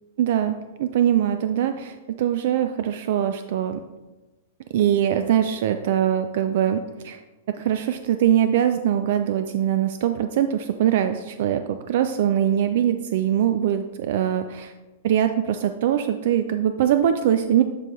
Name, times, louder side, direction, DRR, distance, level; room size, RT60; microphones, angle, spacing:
voice 1, 0.2-3.8 4.7-7.2 7.5-14.7 15.0-17.6, right 10 dB, 60° right, 8 dB, 0.3 m, -22 dB
11.0 x 3.8 x 3.1 m, 1.1 s
hypercardioid pair, 150°, 0 cm